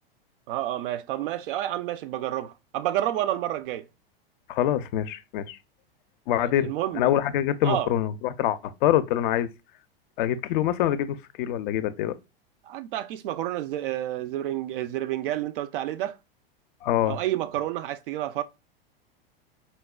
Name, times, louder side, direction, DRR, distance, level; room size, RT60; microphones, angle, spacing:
voice 1, 0.5-3.9 6.4-7.1 7.6-7.9 12.7-16.2 17.1-18.4, right 13 dB, 60° right, 0.4 m, -29 dB
voice 2, 4.5-5.6 6.3-9.5 10.2-12.2 16.8-17.2, left 11 dB, 60° left, 0.4 m, -25 dB
4.1 x 2.1 x 2.3 m
hypercardioid pair, 100°, 30 cm